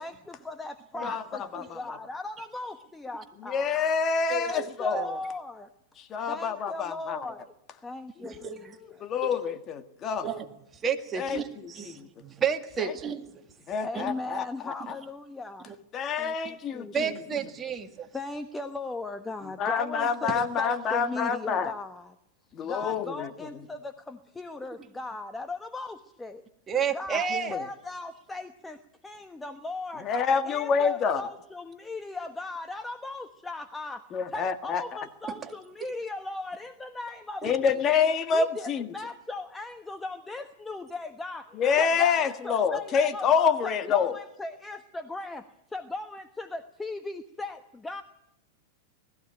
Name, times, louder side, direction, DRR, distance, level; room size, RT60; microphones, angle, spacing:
voice 1, 0.0-3.7 4.4-5.7 6.3-7.5 7.8-9.1 13.8-15.7 16.2-16.3 16.7-16.9 18.1-22.1 22.6-26.4 26.9-30.1 30.5-34.0 34.3-37.7 38.3-43.3 43.6-45.5 45.7-48.0, left 2 dB, 10° left, 1.1 m, -38 dB
voice 2, 1.0-2.0 3.4-5.2 6.0-7.2 8.3-10.3 11.2-12.1 12.8-12.9 13.7-15.0 15.9-17.2 19.6-21.7 22.5-23.5 27.1-27.7 30.0-31.2 34.1-34.8 37.4-38.9 41.5-44.2, left 6 dB, 30° left, 1.6 m, -27 dB
voice 3, 4.3-4.7 4.9-5.1 8.2-8.7 9.2-9.3 10.2-10.5 10.8-13.3 13.9-14.0 15.7-15.8 16.9-18.1 26.7-27.6 37.4-37.5, right 7 dB, 25° right, 2.0 m, -31 dB
20.0 x 15.0 x 9.1 m
hypercardioid pair, 120°, 0 cm